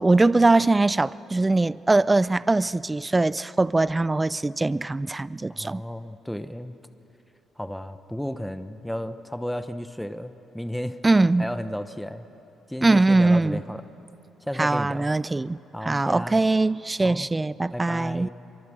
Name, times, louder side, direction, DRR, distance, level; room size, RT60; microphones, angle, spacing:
voice 1, 0.0-5.8 11.0-11.5 12.8-13.6 14.6-18.3, right 2 dB, 20° right, 0.4 m, -21 dB
voice 2, 5.5-6.7 7.6-11.0 11.4-12.3 12.7-13.9 14.4-15.1 15.7-16.4 17.0-17.3 17.7-18.3, equal, 5° left, 0.9 m, -33 dB
25.0 x 23.5 x 7.6 m
cardioid pair, 90°, 0 cm